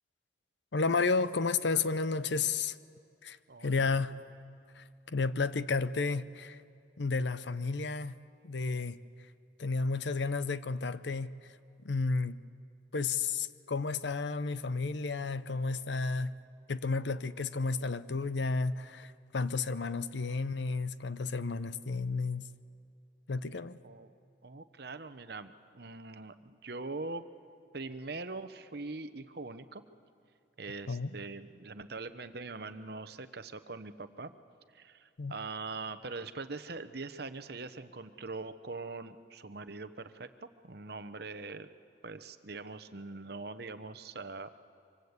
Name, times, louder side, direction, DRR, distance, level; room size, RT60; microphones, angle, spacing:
voice 1, 0.7-2.8 3.2-4.1 4.8-6.6 7.0-8.2 8.4-9.0 9.6-11.3 11.8-12.4 12.9-16.3 16.7-22.5 23.3-23.8 30.9-31.1 35.2-35.3, left 4 dB, 65° left, 14 dB, 0.7 m, -32 dB
voice 2, 3.5-4.0 23.8-24.1 24.4-27.2 27.7-29.8 30.6-34.3 34.7-41.7 42.0-44.5, right 3 dB, 55° right, 11 dB, 0.9 m, -42 dB
25.5 x 25.0 x 8.1 m, 2.5 s
head